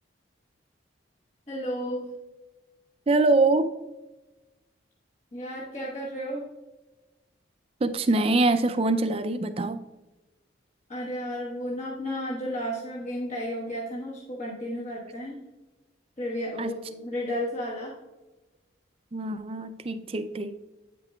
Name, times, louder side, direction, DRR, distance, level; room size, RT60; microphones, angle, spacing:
voice 1, 1.5-2.1 5.3-6.5 10.9-15.4 16.2-18.0, equal, 35° left, -5 dB, 1.1 m, -33 dB
voice 2, 3.1-3.7 7.8-9.8 16.6-16.7 19.1-20.6, right 2 dB, 30° right, 10 dB, 0.4 m, -24 dB
9.0 x 5.6 x 2.3 m, 1.1 s
head